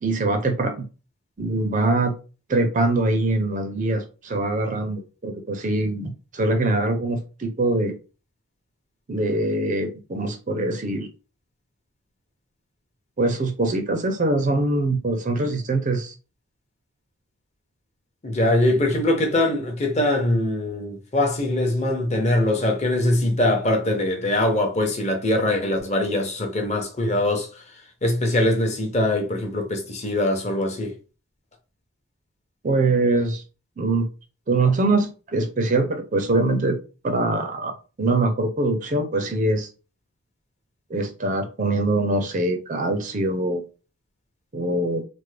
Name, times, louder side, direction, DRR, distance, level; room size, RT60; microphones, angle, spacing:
voice 1, 0.0-0.9 1.4-2.1 2.5-7.9 9.1-11.1 13.2-16.1 32.6-33.4 33.8-34.1 34.5-36.8 37.0-39.7 40.9-43.6 44.5-45.0, right 2 dB, 35° right, 0.4 m, -23 dB
voice 2, 18.2-27.6 28.0-31.0, left 1 dB, 30° left, 0.7 m, -22 dB
3.3 x 2.1 x 3.2 m
head